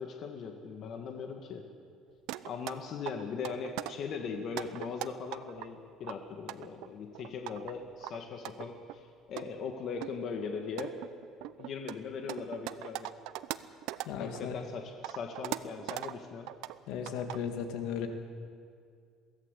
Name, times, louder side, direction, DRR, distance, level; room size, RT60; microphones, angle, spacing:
voice 1, 0.0-1.6 2.4-10.9 11.6-13.1 14.2-16.5, left 5 dB, 45° left, 3 dB, 1.8 m, -39 dB
sound 1, 2.3-2.7 3.1-3.9 4.4-5.7 6.0-7.7 8.0-8.9 9.4-9.5 10.0-10.1 10.6-14.4 14.7-16.1 16.5-16.8 17.1-17.5, right 16 dB, 80° right, 0.7 m, -39 dB
voice 2, 14.1-14.5 16.9-18.1, left 7 dB, 75° left, 5 dB, 2.5 m, -36 dB
22.5 x 17.0 x 8.4 m, 2.2 s
cardioid pair, 160°, 0 cm